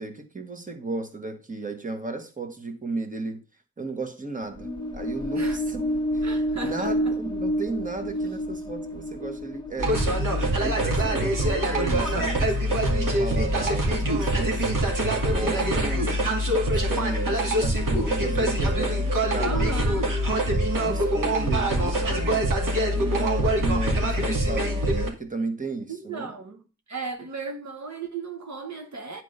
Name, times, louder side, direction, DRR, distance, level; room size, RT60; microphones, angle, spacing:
voice 1, 0.0-3.4 3.8-5.8 6.1-6.4 6.7-10.0 10.6-14.7 15.2-19.7 20.8-22.5 22.9-26.3, right 3 dB, 25° right, 1.6 m, -34 dB
sound 1, 4.5-12.1, equal, 15° left, 1.4 m, -30 dB
voice 2, 6.2-7.1 19.3-20.1 25.9-26.6 26.9-29.2, right 4 dB, 60° right, 1.2 m, -35 dB
sound 2, 9.8-25.1, right 1 dB, 80° right, 2.6 m, -24 dB
9.7 x 4.7 x 5.4 m
wide cardioid pair, 85°, 32 cm